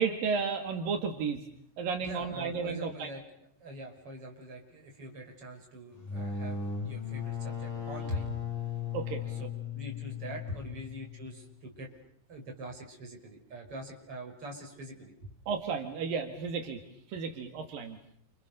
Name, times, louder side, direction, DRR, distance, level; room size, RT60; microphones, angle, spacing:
voice 1, 0.0-1.4 1.8-3.1 8.9-9.2 15.5-16.8 17.1-18.0, right 5 dB, 80° right, 5 dB, 3.9 m, -33 dB
voice 2, 2.0-3.2 3.6-8.3 9.2-11.9 12.3-15.4, right 1 dB, 40° right, 2 dB, 6.6 m, -43 dB
sound 1, 5.9-11.5, left 7 dB, 65° left, 9.5 m, -37 dB
29.5 x 28.0 x 6.8 m, 0.66 s
omnidirectional pair, 3.9 m